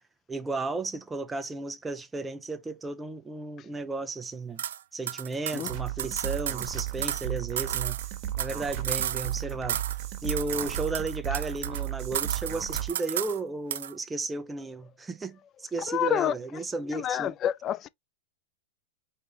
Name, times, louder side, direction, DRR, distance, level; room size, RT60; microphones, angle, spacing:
voice 1, 0.3-4.6 4.9-8.0 8.4-9.8 10.2-17.4, right 3 dB, 10° right, 0.6 m, -34 dB
sound 1, 4.6-4.8 5.1-7.3 7.6-9.4 9.7-10.0 10.3-11.9 12.1-13.4 13.7-13.9, right 10 dB, 80° right, 0.4 m, -33 dB
sound 2, 5.7-12.9, right 12 dB, 45° right, 1.2 m, -34 dB
voice 2, 15.9-16.3 16.9-17.9, left 10 dB, 30° left, 0.4 m, -27 dB
4.6 x 3.2 x 2.9 m
hypercardioid pair, 130°, 0 cm